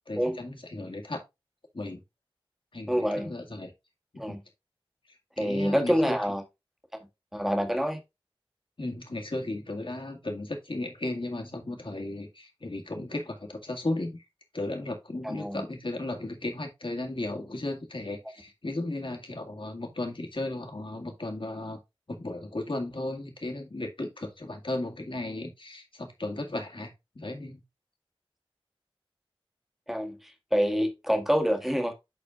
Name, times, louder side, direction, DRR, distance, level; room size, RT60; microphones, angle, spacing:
voice 1, 0.1-1.2 1.7-2.0 2.7-3.7 4.1-4.4 5.4-6.2 8.8-14.2 14.5-21.8 22.1-27.6, left 2 dB, 60° left, 2.0 m, -35 dB
voice 2, 2.9-3.3 4.2-4.4 5.4-6.4 7.3-8.0 15.2-15.6 29.9-31.9, equal, 5° right, 1.6 m, -27 dB
11.5 x 4.3 x 2.4 m
wide cardioid pair, 60°, 10 cm